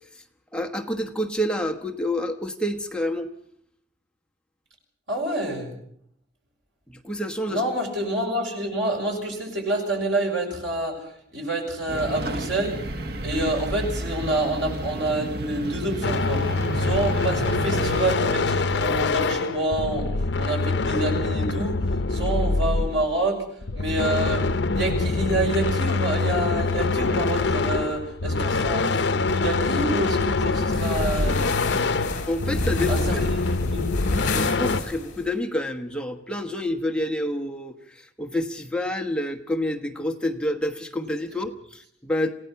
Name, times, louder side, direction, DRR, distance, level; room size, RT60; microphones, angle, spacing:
voice 1, 0.5-3.3 6.9-7.6 32.3-33.2 34.3-42.3, left 1 dB, 5° left, 4 dB, 1.1 m, -28 dB
voice 2, 5.1-5.7 7.5-11.0 11.3-12.8 13.2-20.1 20.4-23.4 23.7-24.5 24.7-31.4 32.9-33.8, right 1 dB, 90° right, 2 dB, 6.3 m, -27 dB
sound 1, 11.9-18.2, right 1 dB, 55° right, 1.0 m, -31 dB
sound 2, 16.0-23.2 23.6-34.8, left 3 dB, 70° left, 0.7 m, -24 dB
sound 3, 30.6-35.3, left 3 dB, 45° left, 4.1 m, -32 dB
27.5 x 17.0 x 5.7 m, 0.68 s
head